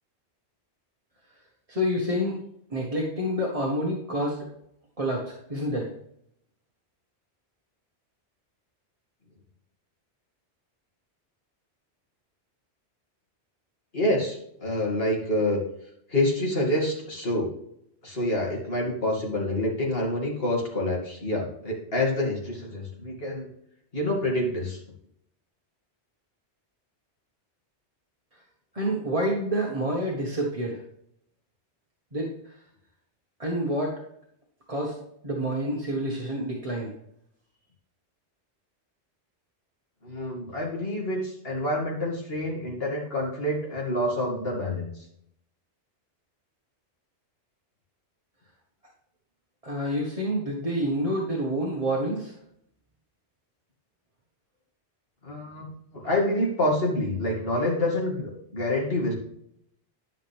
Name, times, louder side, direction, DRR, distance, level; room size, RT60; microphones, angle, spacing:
voice 1, 1.7-2.4 2.7-4.4 5.0-5.9 28.7-30.8 32.1-32.6 33.4-34.0 34.7-35.0 35.2-36.9 49.6-52.4, equal, 30° right, -3 dB, 1.5 m, -28 dB
voice 2, 13.9-15.6 16.1-17.5 18.0-23.5 23.9-24.8 40.0-44.9 55.2-59.1, left 1 dB, 60° left, -2 dB, 2.7 m, -27 dB
12.0 x 5.8 x 3.5 m, 0.73 s
omnidirectional pair, 1.1 m